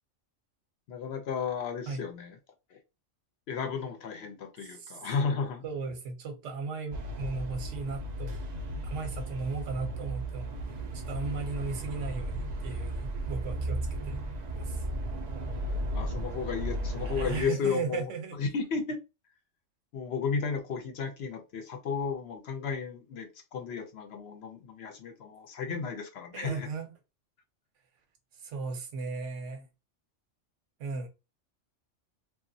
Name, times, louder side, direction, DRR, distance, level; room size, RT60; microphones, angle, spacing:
voice 1, 0.9-2.4 2.7-2.8 3.5-5.6 15.9-18.0 18.3-19.0 19.9-26.7, left 5 dB, 65° left, 0.7 m, -33 dB
voice 2, 4.6-5.0 5.6-8.4 8.8-10.6 11.1-14.2 14.6-14.8 17.0-18.5 26.3-26.9 28.4-29.7 30.8-31.1, right 4 dB, 75° right, 1.0 m, -36 dB
sound 1, 6.9-17.4, right 1 dB, 55° right, 0.5 m, -35 dB
2.9 x 2.3 x 2.6 m
omnidirectional pair, 1.3 m